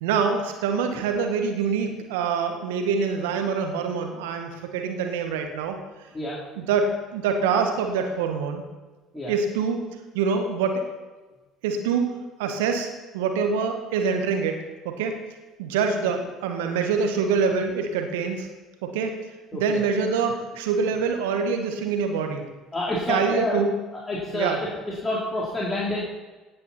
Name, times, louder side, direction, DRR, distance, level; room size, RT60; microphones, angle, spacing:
voice 1, 0.0-5.8 6.6-8.6 9.3-9.8 10.1-10.8 11.6-15.2 15.6-18.5 18.8-19.2 19.5-22.5 23.1-23.7 24.3-24.6, right 5 dB, 70° right, 5 dB, 1.6 m, -25 dB
voice 2, 22.7-23.6 23.9-24.7 25.0-26.0, left 1 dB, 20° left, -6 dB, 3.5 m, -28 dB
16.5 x 9.7 x 4.4 m, 1.2 s
figure-of-eight pair, 60°, 0 cm